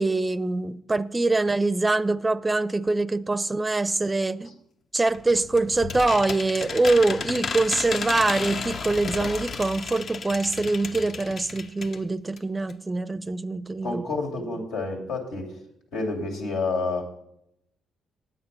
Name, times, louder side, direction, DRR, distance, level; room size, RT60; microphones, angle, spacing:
voice 1, 0.0-4.5 4.9-14.1, right 2 dB, 20° right, 0.4 m, -24 dB
sound 1, 5.1-12.0 12.4-12.5 12.7-12.8, left 5 dB, 50° left, 0.5 m, -33 dB
voice 2, 13.8-15.6 15.9-17.0, left 3 dB, 90° left, 2.7 m, -29 dB
9.4 x 8.4 x 5.3 m
cardioid pair, 90°, 0 cm